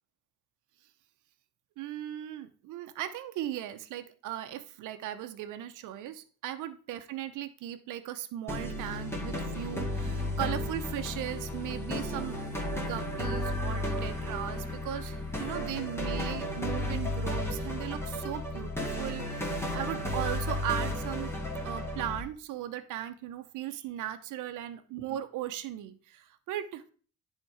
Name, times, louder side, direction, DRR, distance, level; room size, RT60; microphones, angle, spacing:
voice 1, 1.8-12.4 12.7-21.3 21.6-26.8, right 12 dB, 90° right, 10 dB, 0.8 m, -38 dB
sound 1, 8.5-22.2, left 1 dB, 10° left, 2.2 m, -33 dB
10.0 x 3.8 x 4.8 m, 0.41 s
cardioid pair, 90°, 30 cm